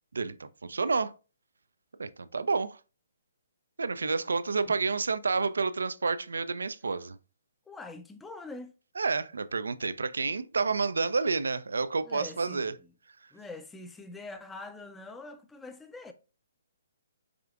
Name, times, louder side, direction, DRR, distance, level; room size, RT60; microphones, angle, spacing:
voice 1, 0.1-1.1 2.0-2.8 3.8-7.2 9.0-12.7, right 4 dB, 85° right, 0.4 m, -29 dB
voice 2, 7.7-8.7 12.0-12.9 13.3-16.1, left 3 dB, 5° left, 0.4 m, -44 dB
4.9 x 3.4 x 2.4 m
hypercardioid pair, 145°, 0 cm